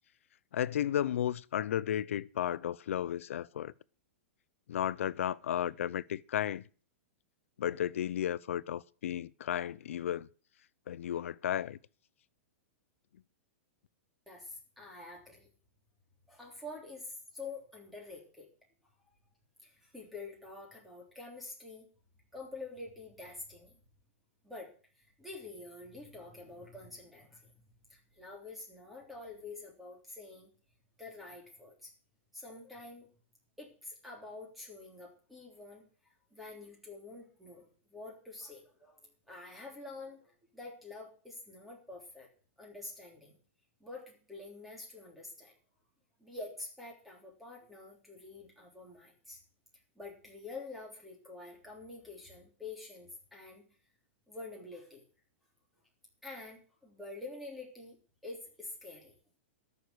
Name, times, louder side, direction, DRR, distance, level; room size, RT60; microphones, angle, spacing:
voice 1, 0.5-3.7 4.7-6.6 7.6-10.3 10.9-11.8, left 10 dB, 80° left, 0.6 m, -33 dB
voice 2, 14.3-15.5 16.3-18.5 19.6-21.9 22.3-23.8 24.4-24.7 25.0-27.6 27.9-30.5 31.0-31.9 32.3-33.1 33.6-35.8 36.3-42.3 42.6-43.4 43.8-45.5 46.2-49.4 49.9-53.6 54.3-55.0 56.2-58.0 58.2-59.1, left 3 dB, ahead, 3.3 m, -47 dB
13.0 x 6.8 x 8.1 m
supercardioid pair, 160°, 7 cm